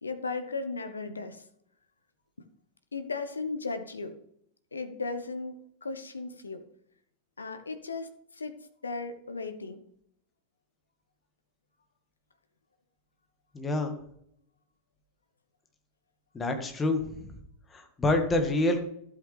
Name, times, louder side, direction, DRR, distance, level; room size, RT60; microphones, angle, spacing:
voice 1, 0.0-1.4 2.9-4.2 4.7-6.6 7.4-8.6 8.8-9.8, left 3 dB, 75° left, 9 dB, 0.9 m, -36 dB
voice 2, 13.5-13.9 16.3-17.3 17.7-18.8, left 2 dB, 15° left, 5 dB, 1.7 m, -27 dB
12.0 x 8.3 x 3.3 m, 0.71 s
figure-of-eight pair, 90°, 0 cm